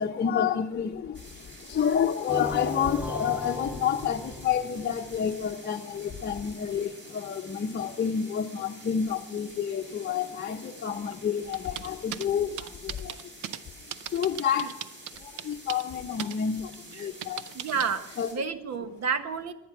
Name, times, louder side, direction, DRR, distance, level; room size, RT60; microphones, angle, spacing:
voice 1, 0.0-13.2 14.1-14.8 15.1-17.5 18.2-18.3, left 8 dB, 35° left, 0.8 m, -29 dB
sound 1, 1.1-18.3, right 1 dB, 40° right, 6.2 m, -49 dB
sound 2, 2.3-5.4, left 1 dB, 5° right, 0.5 m, -38 dB
sound 3, 11.5-12.3 12.6-13.6 13.9-15.9 16.2-16.3 16.7-17.9, right 11 dB, 75° right, 0.7 m, -37 dB
voice 2, 17.5-19.5, right 6 dB, 55° right, 1.3 m, -31 dB
22.0 x 9.4 x 6.0 m
cardioid pair, 130°, 31 cm